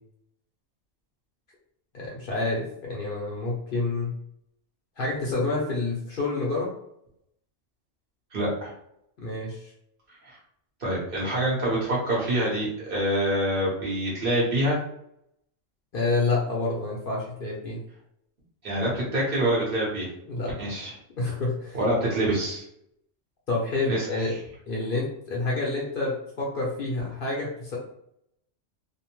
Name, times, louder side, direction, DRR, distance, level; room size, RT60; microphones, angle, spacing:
voice 1, 1.9-4.1 5.0-6.7 9.2-9.7 15.9-17.8 20.3-20.5 21.2-21.8 23.5-24.3 24.7-26.1 26.4-27.8, left 3 dB, 55° left, -3 dB, 0.7 m, -28 dB
voice 2, 8.3-8.7 10.2-10.4 10.8-14.8 18.6-20.1 20.6-20.9 21.7-22.6 23.9-24.4, right 1 dB, 50° right, -5 dB, 1.1 m, -26 dB
2.6 x 2.1 x 2.9 m, 0.74 s
omnidirectional pair, 1.2 m